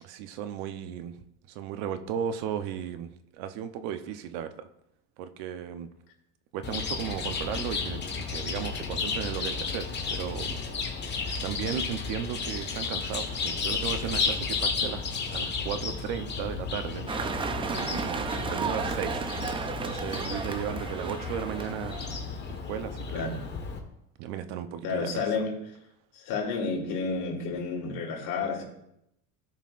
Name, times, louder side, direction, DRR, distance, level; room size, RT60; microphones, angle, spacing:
voice 1, 0.0-1.1 1.5-4.7 5.2-5.9 6.5-10.6 11.3-15.0 15.3-17.1 17.7-18.2 18.5-19.3 19.8-22.0 22.5-23.3 24.2-25.2, right 9 dB, 65° right, 9 dB, 0.9 m, -35 dB
Chirp tweet, 6.6-23.8, left 5 dB, 25° left, 1.4 m, -33 dB
sound 1, 17.1-22.2, right 5 dB, 15° right, 0.4 m, -33 dB
voice 2, 23.1-23.5 24.8-25.5 26.1-28.6, left 4 dB, 70° left, -1 dB, 3.0 m, -30 dB
16.5 x 5.7 x 2.5 m, 0.81 s
cardioid pair, 140°, 40 cm